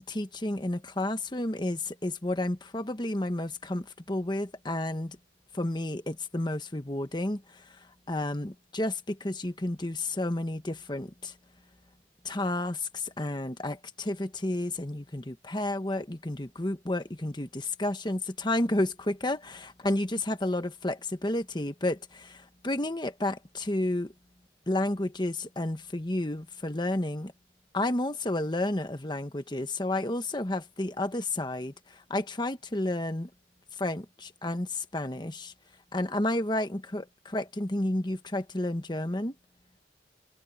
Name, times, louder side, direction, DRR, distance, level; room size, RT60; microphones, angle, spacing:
voice 1, 0.1-5.2 5.5-7.4 8.1-11.3 12.2-24.1 24.7-27.3 27.7-33.3 33.8-35.5 35.9-39.3, left 1 dB, 25° left, 1.2 m, -31 dB
head